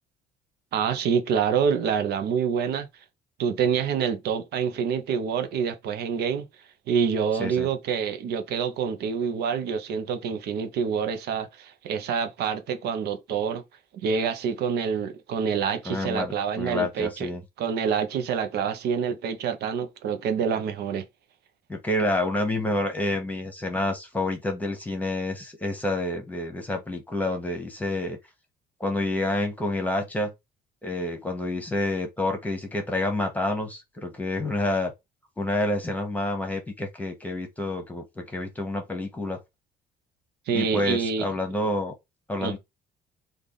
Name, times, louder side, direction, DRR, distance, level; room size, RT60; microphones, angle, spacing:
voice 1, 0.7-2.9 3.4-6.5 6.9-13.6 13.9-17.3 17.6-21.0 40.5-41.3 42.4-42.6, right 6 dB, 70° right, 0.7 m, -27 dB
voice 2, 15.8-17.4 21.7-28.2 28.8-30.3 30.8-34.9 35.4-39.4 40.5-41.9 42.3-42.6, left 1 dB, 10° left, 1.2 m, -28 dB
3.3 x 2.5 x 3.9 m
cardioid pair, 110°, 17 cm